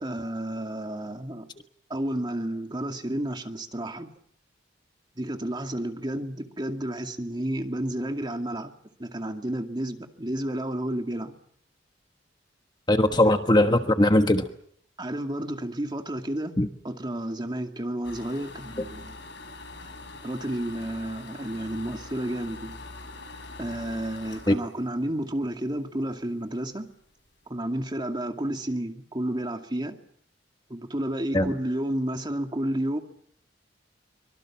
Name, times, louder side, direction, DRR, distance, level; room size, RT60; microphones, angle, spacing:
voice 1, 0.0-1.5 1.9-4.1 5.2-8.7 9.0-11.3 15.0-16.5 16.8-19.2 20.2-22.8 23.6-26.9 27.5-30.0 30.7-33.0, right 1 dB, 25° right, 5 dB, 2.4 m, -31 dB
voice 2, 12.9-14.4 16.6-16.7 18.8-18.9 24.5-24.6 31.3-31.5, left 1 dB, 25° left, 7 dB, 1.3 m, -20 dB
sound 1, 18.0-25.8 26.2-26.3 26.7-26.8 27.0-27.4, left 2 dB, 70° left, 5.7 m, -43 dB
25.0 x 23.5 x 7.5 m, 0.65 s
head